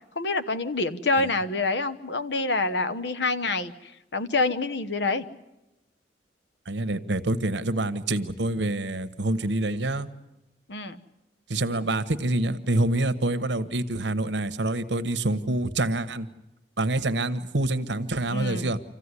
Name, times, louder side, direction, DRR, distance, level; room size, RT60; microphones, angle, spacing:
voice 1, 0.1-5.2 10.7-11.0 18.3-18.7, left 3 dB, 70° left, 12 dB, 1.1 m, -27 dB
voice 2, 6.7-10.1 11.5-16.3 16.8-18.8, right 2 dB, 75° right, 11 dB, 1.1 m, -26 dB
27.0 x 15.0 x 9.8 m, 0.95 s
head